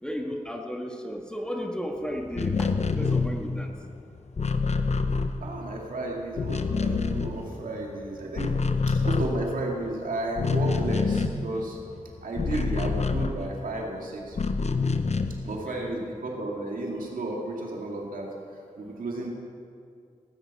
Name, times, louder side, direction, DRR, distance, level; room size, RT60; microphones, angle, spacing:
voice 1, 0.0-3.7 12.6-13.0 15.5-16.0, equal, 5° left, 2 dB, 1.6 m, -35 dB
sound 1, 2.3-5.9 6.2-7.9 8.2-13.8 14.3-15.6, left 4 dB, 55° left, 0.8 m, -27 dB
voice 2, 5.4-8.6 8.9-11.8 12.2-14.4 15.4-18.3 18.8-19.3, right 2 dB, 85° right, 0 dB, 2.1 m, -33 dB
18.0 x 9.6 x 4.8 m, 2.3 s
cardioid pair, 50°, 14 cm